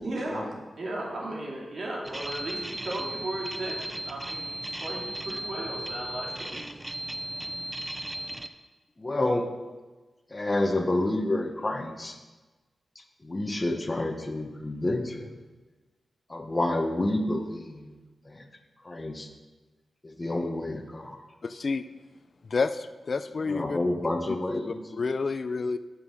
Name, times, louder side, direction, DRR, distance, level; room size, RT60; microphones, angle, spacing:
voice 1, 0.0-6.7, right 1 dB, 65° right, -3 dB, 2.8 m, -36 dB
sound 1, 2.0-8.5, right 1 dB, 15° right, 0.6 m, -36 dB
voice 2, 9.0-9.5 10.3-12.2 13.2-15.4 16.3-17.9 18.3-18.4 18.8-19.3 20.0-21.2 23.5-24.8, left 1 dB, 30° left, 4 dB, 1.1 m, -29 dB
voice 3, 21.4-21.8 22.5-23.8 24.3-24.4 24.7-25.8, left 4 dB, 55° left, 12 dB, 0.4 m, -29 dB
8.5 x 7.4 x 6.3 m, 1.2 s
wide cardioid pair, 85°, 0 cm